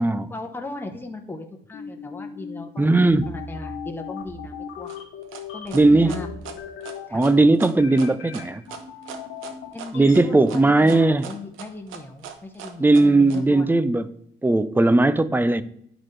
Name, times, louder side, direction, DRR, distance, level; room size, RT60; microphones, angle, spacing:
voice 1, 0.3-4.9 5.5-6.3 7.1-7.2 9.7-13.7, left 2 dB, 10° left, 0.9 m, -37 dB
sound 1, 1.7-10.2, left 6 dB, 80° left, 1.4 m, -37 dB
voice 2, 2.8-3.3 5.7-6.2 7.1-8.6 9.9-11.3 12.8-14.2 14.4-15.6, right 2 dB, 10° right, 0.4 m, -18 dB
sound 2, 4.9-13.4, right 6 dB, 85° right, 0.8 m, -39 dB
11.0 x 4.1 x 3.2 m
cardioid pair, 90°, 20 cm